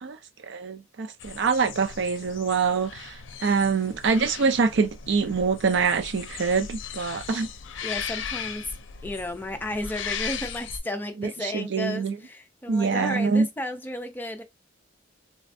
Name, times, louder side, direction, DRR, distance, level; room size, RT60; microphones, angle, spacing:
voice 1, 0.0-7.5 11.2-12.2 12.7-13.5, right 5 dB, 65° right, 0.5 m, -25 dB
sound 1, 1.2-10.8, left 7 dB, 75° left, 0.5 m, -37 dB
voice 2, 7.8-8.7 9.0-14.4, left 1 dB, 10° left, 0.5 m, -33 dB
3.3 x 3.2 x 2.6 m
head